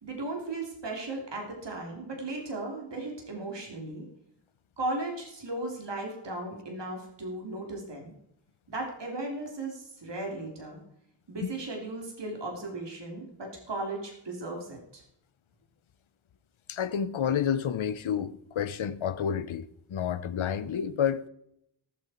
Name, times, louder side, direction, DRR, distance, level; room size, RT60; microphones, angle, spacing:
voice 1, 0.0-4.0 4.8-8.1 8.7-10.8 11.3-15.0, right 2 dB, 65° right, 3.2 m, -36 dB
voice 2, 16.7-21.3, left 8 dB, 90° left, 0.8 m, -30 dB
17.5 x 7.7 x 4.3 m
cardioid pair, 45°, 46 cm